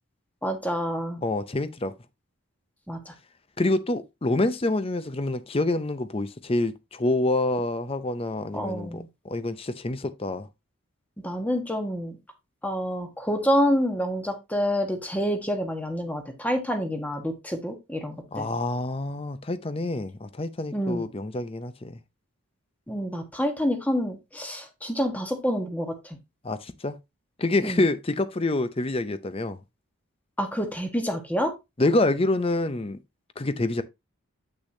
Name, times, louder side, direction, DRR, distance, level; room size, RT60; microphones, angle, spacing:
voice 1, 0.4-1.2 2.9-3.1 8.5-9.1 11.2-12.2 12.6-18.5 20.7-21.0 22.9-26.2 27.6-27.8 30.4-31.5, equal, 5° left, 1.2 m, -28 dB
voice 2, 1.2-1.9 3.6-10.5 18.3-22.0 26.4-27.0 27.4-29.6 31.8-33.0 33.4-33.8, left 2 dB, 25° left, 0.5 m, -27 dB
8.3 x 6.4 x 2.7 m
head